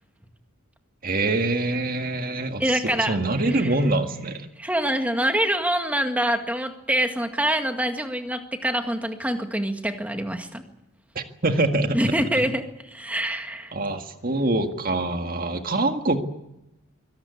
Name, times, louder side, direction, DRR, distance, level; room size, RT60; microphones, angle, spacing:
voice 1, 1.0-4.5 11.2-12.1 13.7-16.2, right 2 dB, 40° right, 6 dB, 1.9 m, -25 dB
voice 2, 2.6-3.2 3.5-3.7 4.6-10.6 11.9-13.7, right 1 dB, 5° right, 6 dB, 1.9 m, -25 dB
24.5 x 18.0 x 8.3 m, 0.90 s
head